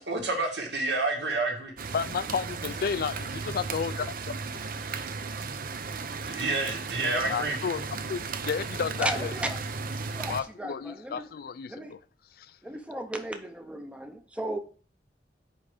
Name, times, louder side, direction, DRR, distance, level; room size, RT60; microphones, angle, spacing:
voice 1, 0.0-1.7 6.3-7.6, right 2 dB, 80° right, 1.9 m, -29 dB
sound 1, 1.8-10.4, right 4 dB, 50° right, 0.6 m, -35 dB
voice 2, 1.9-4.3 7.3-9.3 10.3-12.0 12.4-12.5, left 6 dB, 55° left, 0.3 m, -32 dB
voice 3, 9.0-11.3 11.7-11.9 12.6-14.6, right 1 dB, 5° right, 0.6 m, -35 dB
5.4 x 4.8 x 5.0 m
head